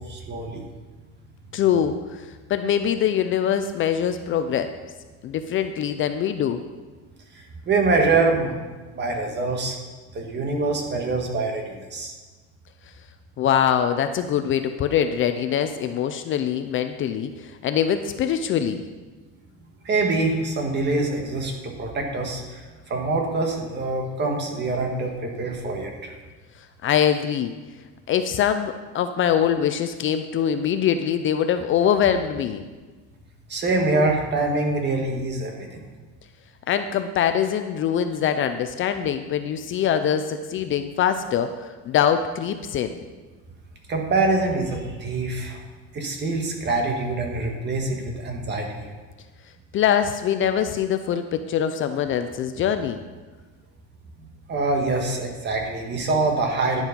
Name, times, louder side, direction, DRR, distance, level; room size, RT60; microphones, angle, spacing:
voice 1, 0.1-0.6 7.7-8.5 8.9-9.8 10.1-12.1 19.8-26.1 33.5-35.9 43.9-45.6 45.9-48.9 54.5-56.8, right 3 dB, 35° right, 2 dB, 1.6 m, -25 dB
voice 2, 1.5-4.7 5.2-6.6 13.4-18.8 26.8-27.5 28.1-32.6 36.7-43.0 49.7-53.0, left 9 dB, 40° left, 9 dB, 0.5 m, -23 dB
11.0 x 7.2 x 5.3 m, 1.3 s
cardioid pair, 150°, 32 cm